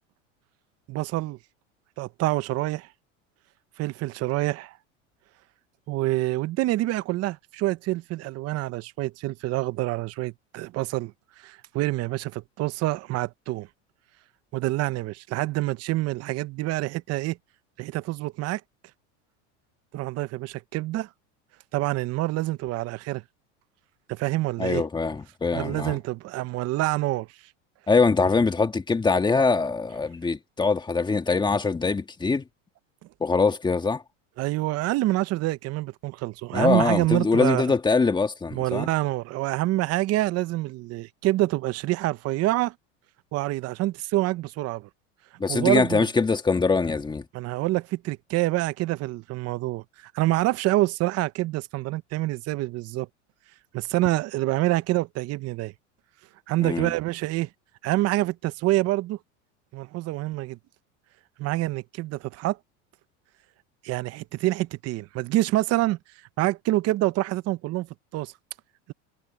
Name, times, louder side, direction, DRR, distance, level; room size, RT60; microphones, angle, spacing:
voice 1, 0.9-1.4 2.0-2.9 3.8-4.8 5.9-13.7 14.5-17.4 17.8-18.6 19.9-21.1 21.7-23.2 24.1-24.8 25.5-27.3 34.4-37.6 38.5-42.7 43.3-44.9 45.5-46.1 47.3-53.1 53.7-55.7 56.5-57.5 57.8-59.2 59.7-60.6 61.4-62.6 63.8-66.0 66.4-67.9 68.1-68.3, right 17 dB, 40° right, 0.9 m, -26 dB
voice 2, 24.6-26.0 27.9-32.4 33.2-34.0 36.5-38.9 45.4-47.2 56.6-56.9, left 4 dB, 10° left, 1.6 m, -23 dB
supercardioid pair, 120°, 37 cm